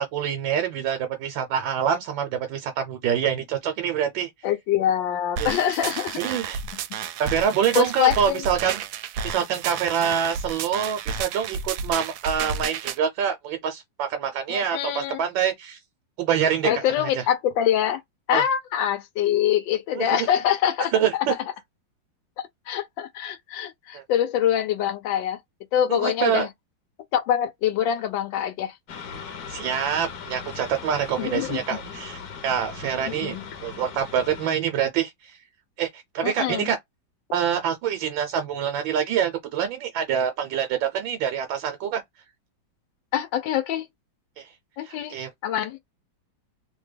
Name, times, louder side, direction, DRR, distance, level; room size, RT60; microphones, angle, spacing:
voice 1, 0.0-4.3 5.4-5.5 6.2-6.6 7.2-8.8 9.2-15.8 16.2-16.7 17.0-17.1 18.3-18.4 20.0-20.1 20.9-21.3 23.9-24.0 25.9-26.5 29.5-33.4 33.6-35.4 35.8-36.8 37.3-42.0 44.4-44.5 44.8-45.3, right 8 dB, 90° right, 1.4 m, -26 dB
voice 2, 4.4-6.4 7.7-8.5 14.5-15.2 16.6-18.0 18.3-21.4 22.7-25.4 25.7-26.5 27.1-28.7 31.2-31.6 33.1-33.4 36.2-36.7 43.1-43.9 44.8-45.2 45.4-45.8, left 10 dB, 90° left, 1.4 m, -24 dB
sound 1, 5.4-13.0, right 6 dB, 70° right, 1.0 m, -32 dB
sound 2, 28.9-34.5, left 6 dB, 60° left, 1.2 m, -39 dB
3.4 x 2.2 x 3.3 m
omnidirectional pair, 2.0 m